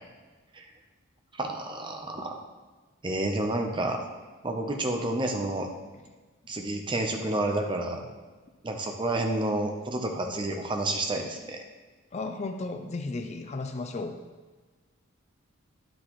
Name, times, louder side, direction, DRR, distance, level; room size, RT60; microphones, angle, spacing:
voice 1, 1.4-2.4 3.0-4.0 4.4-5.7 6.5-8.0 8.6-11.6, right 2 dB, 25° right, 3 dB, 0.7 m, -29 dB
voice 2, 12.1-14.2, left 3 dB, 30° left, 6 dB, 0.4 m, -34 dB
10.0 x 6.1 x 3.1 m, 1.3 s
head